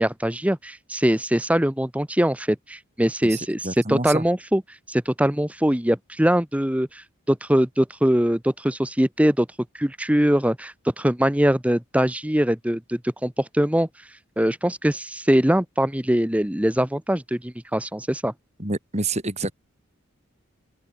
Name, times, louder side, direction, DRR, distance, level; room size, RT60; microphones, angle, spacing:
voice 1, 0.0-4.6 4.9-9.5 9.7-13.9 14.4-18.3, equal, 5° right, 1.0 m, -22 dB
voice 2, 3.6-4.2 18.6-19.5, right 2 dB, 30° right, 5.5 m, -27 dB
open air
head